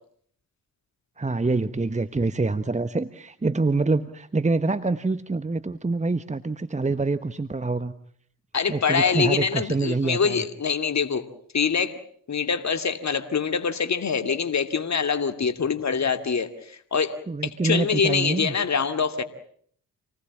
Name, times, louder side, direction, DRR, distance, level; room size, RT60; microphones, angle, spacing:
voice 1, 1.2-7.9 8.7-10.4 17.3-18.5, right 3 dB, 20° right, 13 dB, 1.3 m, -26 dB
voice 2, 8.5-11.2 11.5-12.0 12.3-17.2 17.4-19.2, left 6 dB, 45° left, 9 dB, 2.5 m, -24 dB
27.5 x 19.5 x 8.7 m, 0.63 s
hypercardioid pair, 40°, 38 cm